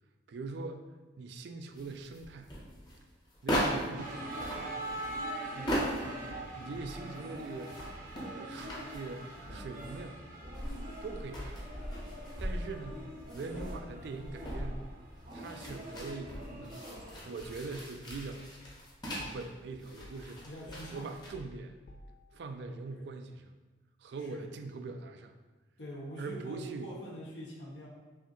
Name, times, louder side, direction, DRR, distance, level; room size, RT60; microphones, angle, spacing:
voice 1, 0.3-0.9 1.2-2.5 3.4-5.3 5.5-7.7 8.2-9.2 9.5-10.2 11.0-11.7 12.4-13.0 13.3-14.9 15.3-16.7 17.3-18.5 19.2-20.4 20.9-21.7 22.3-23.5 24.0-25.4 26.2-26.9, right 3 dB, 70° right, 6 dB, 0.3 m, -42 dB
sound 1, 1.8-4.0 4.3-6.2 6.6-9.9 10.4-19.5 19.7-21.3, equal, 25° left, 0.8 m, -39 dB
sound 2, 4.0-17.6, right 1 dB, 45° right, 0.7 m, -44 dB
sound 3, 4.4-7.2 7.7-8.0 8.7-9.1 9.5-10.1 10.6-10.8 11.4-11.7 12.1-12.9 13.5-13.9 14.2-14.4 14.7-14.9 15.7-16.4 17.0-17.7 18.1-18.4 18.7-18.9 19.2-19.6 20.0-20.3 20.7-22.3, left 1 dB, 50° left, 0.3 m, -52 dB
voice 2, 20.4-21.1 22.9-23.0 24.2-24.4 25.8-27.9, equal, 80° left, -3 dB, 1.0 m, -44 dB
5.7 x 2.5 x 2.7 m, 1.3 s
head